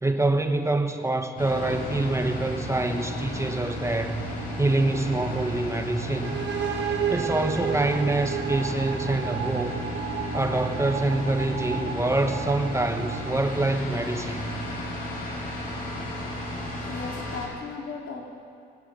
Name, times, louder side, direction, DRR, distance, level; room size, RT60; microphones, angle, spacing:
voice 1, 0.0-4.2 4.6-6.4 7.1-9.8 10.3-14.7, right 2 dB, 15° right, 6 dB, 1.3 m, -26 dB
sound 1, 1.4-17.5, left 1 dB, 45° left, 7.8 m, -33 dB
sound 2, 6.2-13.9, right 8 dB, 60° right, 1.9 m, -33 dB
voice 2, 16.6-18.2, left 4 dB, 65° left, 0 dB, 4.2 m, -36 dB
22.0 x 16.5 x 9.3 m, 2.4 s
cardioid pair, 90°, 20 cm